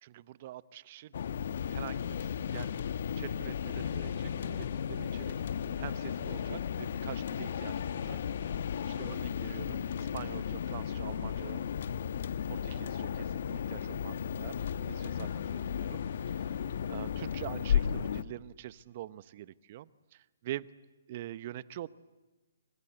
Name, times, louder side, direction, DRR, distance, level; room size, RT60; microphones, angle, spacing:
voice 1, 0.0-1.1 1.7-2.8 3.2-5.3 5.8-8.2 9.0-11.6 12.5-16.0 16.3-16.6 16.9-20.7 21.1-21.9, right 13 dB, 40° right, 17 dB, 0.8 m, -45 dB
sound 1, 1.1-18.2, left 8 dB, 55° left, 1.1 m, -34 dB
sound 2, 4.3-4.9 6.2-6.9 8.9-9.5 11.1-11.7 12.7-13.5 14.5-15.1, right 2 dB, ahead, 8.0 m, -59 dB
29.5 x 25.0 x 7.9 m, 1.2 s
figure-of-eight pair, 135°, 0 cm